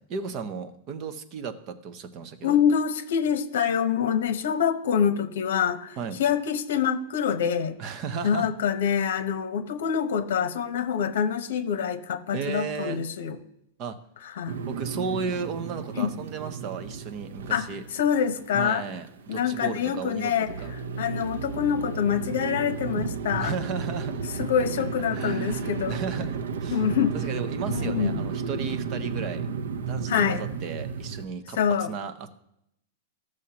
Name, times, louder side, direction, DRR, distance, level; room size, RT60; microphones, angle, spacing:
voice 1, 0.0-2.6 6.0-6.2 7.8-8.5 12.3-13.0 13.8-14.0 14.7-17.9 18.5-20.7 23.3-24.2 25.1-26.9 27.1-29.5 29.9-31.6 31.9-32.3, right 5 dB, 30° right, 9 dB, 0.6 m, -34 dB
voice 2, 2.4-7.8 8.2-13.4 14.2-14.6 16.0-16.1 17.5-17.7 17.9-18.8 19.3-23.5 24.4-26.0 26.7-27.3 27.7-28.2 30.1-30.4 31.5-31.9, left 8 dB, 70° left, 10 dB, 0.8 m, -26 dB
sound 1, 14.5-31.3, right 5 dB, 90° right, 0.6 m, -33 dB
15.0 x 6.3 x 2.9 m, 0.79 s
supercardioid pair, 170°, 0 cm